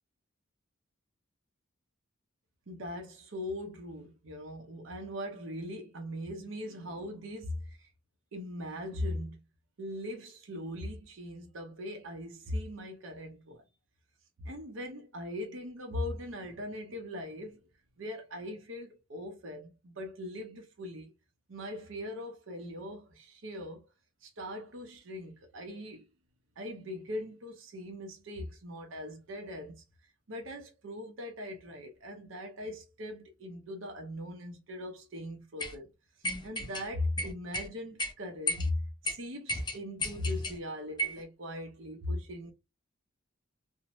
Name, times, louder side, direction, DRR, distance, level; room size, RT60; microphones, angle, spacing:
voice 1, 2.7-7.9 8.3-9.4 9.8-13.6 14.4-17.6 18.0-21.1 21.5-23.9 24.2-26.1 26.6-29.8 30.3-35.9 36.4-42.5, left 1 dB, 80° right, 0.7 m, -40 dB
sound 1, 35.6-35.7 36.2-36.8 37.2-37.7 38.0-38.1 38.5-38.7 39.0-39.1 39.5-40.6 41.0-41.2, left 1 dB, 20° left, 0.4 m, -33 dB
2.6 x 2.1 x 3.0 m
head